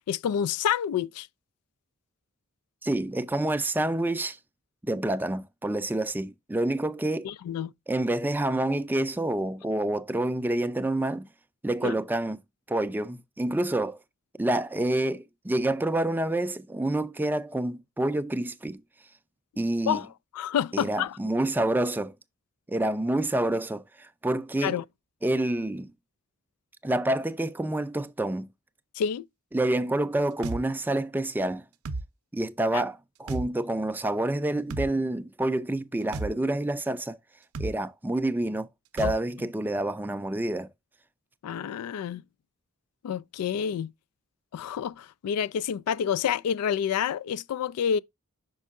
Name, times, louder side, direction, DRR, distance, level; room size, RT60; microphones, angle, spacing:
voice 1, 0.1-1.3 7.2-7.7 11.8-11.9 19.9-20.1 20.3-21.2 24.6-24.8 29.0-29.3 32.7-32.8 39.0-39.1 41.4-42.2 43.0-43.9 44.5-48.0, left 8 dB, 90° left, 0.3 m, -28 dB
voice 2, 2.8-4.4 4.8-7.3 7.9-11.2 11.6-12.4 12.7-14.0 14.4-18.8 19.6-20.0 20.7-22.1 22.7-24.8 25.2-25.9 26.8-28.5 29.5-31.6 32.3-37.2 37.6-38.7 38.9-40.7, right 1 dB, 10° right, 0.4 m, -28 dB
sound 1, 30.4-30.6 31.9-32.1 33.3-33.5 34.7-34.9 36.1-36.3 37.5-37.7 39.0-39.2, right 3 dB, 70° right, 0.6 m, -32 dB
5.5 x 5.2 x 3.5 m
head